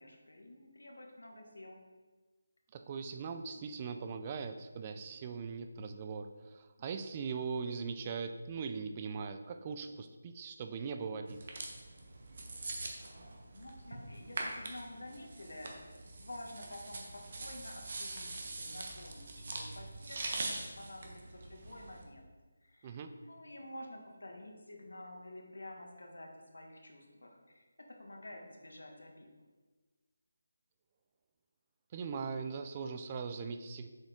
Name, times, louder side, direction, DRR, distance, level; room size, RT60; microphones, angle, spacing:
voice 1, 0.0-1.8 12.5-12.7 13.5-22.2 22.6-27.7 28.0-29.3, left 1 dB, 90° left, 1 dB, 1.5 m, -50 dB
voice 2, 2.7-11.4 22.8-23.2 31.9-33.9, right 5 dB, 25° right, 8 dB, 0.4 m, -40 dB
sound 1, 11.3-22.0, right 2 dB, 50° right, 1.2 m, -43 dB
7.4 x 4.9 x 3.7 m, 1.3 s
figure-of-eight pair, 165°, 0 cm